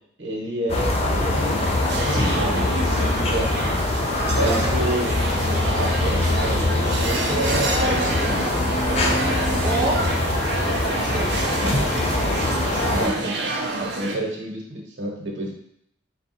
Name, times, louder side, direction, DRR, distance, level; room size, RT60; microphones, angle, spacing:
voice 1, 0.2-1.7 2.0-3.5 4.3-5.1 5.6-9.0 11.6-11.8 12.9-13.3 13.8-15.5, right 1 dB, 80° right, -1 dB, 1.1 m, -29 dB
sound 1, 0.7-13.1, left 2 dB, 35° left, 0.5 m, -23 dB
sound 2, 1.3-14.2, right 2 dB, 65° right, 0.6 m, -28 dB
voice 2, 2.1-2.5 4.3-4.8 9.6-10.0 10.9-12.1 12.4-13.3, right 2 dB, 25° right, -4 dB, 0.6 m, -29 dB
4.2 x 2.3 x 4.2 m, 0.72 s
head